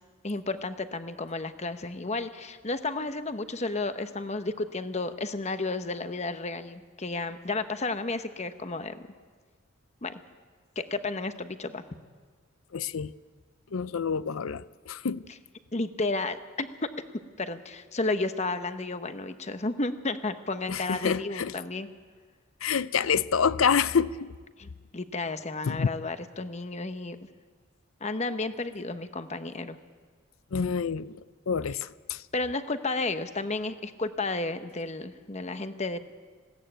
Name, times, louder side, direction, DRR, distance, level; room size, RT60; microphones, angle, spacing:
voice 1, 0.2-9.0 10.0-10.2 10.8-11.8 15.7-16.7 17.4-21.9 24.6-27.2 28.0-29.8 32.3-36.0, left 3 dB, 30° left, 1.0 m, -32 dB
voice 2, 12.7-13.1 13.7-15.3 20.7-21.5 22.6-24.3 25.6-25.9 30.5-31.2 31.5-32.2, left 6 dB, 75° left, 0.6 m, -27 dB
20.0 x 17.0 x 9.0 m
head